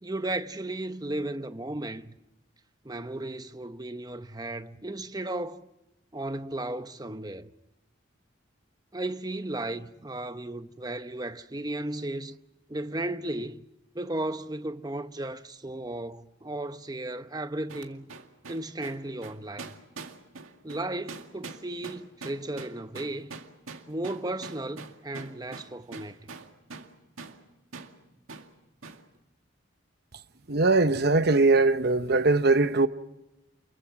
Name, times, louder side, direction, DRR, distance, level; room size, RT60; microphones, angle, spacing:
voice 1, 0.0-2.1 2.8-5.7 6.1-7.5 8.9-12.4 12.7-13.6 13.9-18.1 18.5-19.7 20.6-23.4 23.9-26.2, right 1 dB, 20° right, 0.8 m, -35 dB
sound 1, 17.7-26.9 27.2-27.4 27.7-27.9 28.3-28.5 28.8-29.0, right 4 dB, 90° right, 2.1 m, -43 dB
voice 2, 30.5-32.9, right 3 dB, 50° right, 0.9 m, -21 dB
29.0 x 23.0 x 6.0 m
head